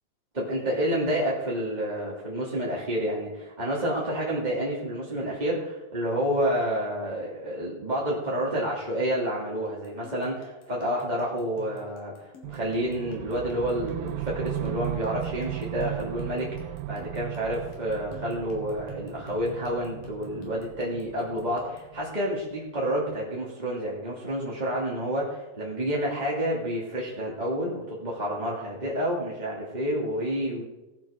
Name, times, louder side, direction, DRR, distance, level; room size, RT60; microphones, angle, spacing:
voice 1, 0.3-30.6, equal, 15° right, -6 dB, 2.1 m, -29 dB
sound 1, 9.7-22.0, left 3 dB, 70° left, 3.9 m, -50 dB
sound 2, 12.4-22.5, right 17 dB, 85° right, 2.3 m, -37 dB
19.5 x 7.5 x 5.2 m, 1.1 s
omnidirectional pair, 4.1 m